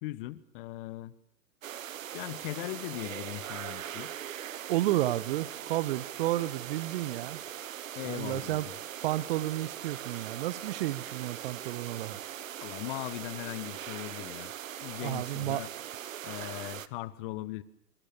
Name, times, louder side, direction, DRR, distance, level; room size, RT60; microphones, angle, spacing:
voice 1, 0.0-1.1 2.1-4.1 7.9-8.8 12.6-14.5 14.8-15.7 16.2-17.6, left 17 dB, 35° left, 18 dB, 1.3 m, -39 dB
sound 1, 1.6-16.9, right 11 dB, 60° right, 1.3 m, -41 dB
voice 2, 4.7-7.4 8.1-8.7 9.0-12.2 15.0-15.6, right 15 dB, 40° right, 19 dB, 1.0 m, -31 dB
26.0 x 25.5 x 7.1 m, 0.71 s
figure-of-eight pair, 115°, 45 cm